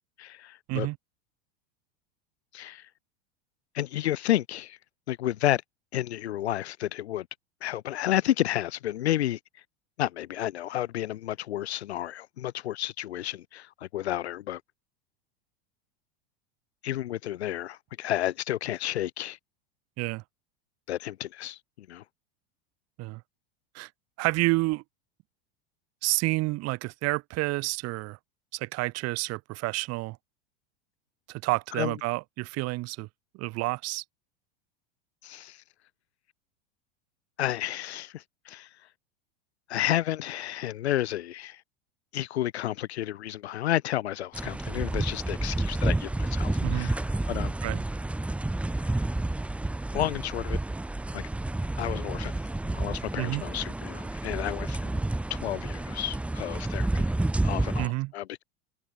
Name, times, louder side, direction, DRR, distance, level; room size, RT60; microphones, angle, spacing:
voice 1, 0.2-0.9 2.5-2.8 3.7-4.8 5.1-5.6 5.9-7.3 7.6-9.4 10.0-14.6 16.8-19.4 20.9-21.6 21.9-22.0 31.8-31.9 35.2-35.6 37.4-38.7 39.7-41.6 42.1-47.6 49.9-50.6 51.1-51.3 51.8-52.3 52.7-55.0 55.3-57.1 57.4-58.4, left 13 dB, 90° left, 0.9 m, -31 dB
voice 2, 24.2-24.8 26.0-28.2 28.5-30.2 31.3-33.1 33.3-34.0 46.6-46.9 47.6-47.8 53.2-53.4 57.8-58.1, right 22 dB, 50° right, 2.7 m, -29 dB
sound 1, 44.3-57.9, right 2 dB, 5° right, 0.6 m, -30 dB
hypercardioid pair, 105°, 32 cm